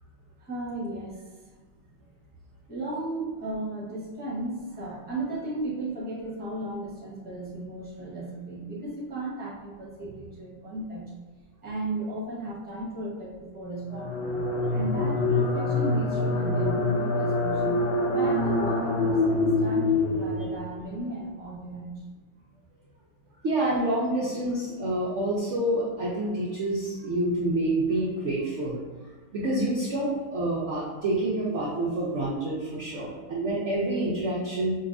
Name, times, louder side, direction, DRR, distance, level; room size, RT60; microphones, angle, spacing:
voice 1, 0.4-1.3 2.7-11.1 11.6-14.3 14.7-22.0 32.9-33.0, right 2 dB, 10° right, -7 dB, 0.5 m, -35 dB
sound 1, 13.9-20.8, left 2 dB, 75° left, 1.5 m, -25 dB
voice 2, 23.4-28.8 29.3-34.8, right 1 dB, 80° right, -5 dB, 0.6 m, -27 dB
5.1 x 2.3 x 2.5 m, 1.4 s
omnidirectional pair, 2.0 m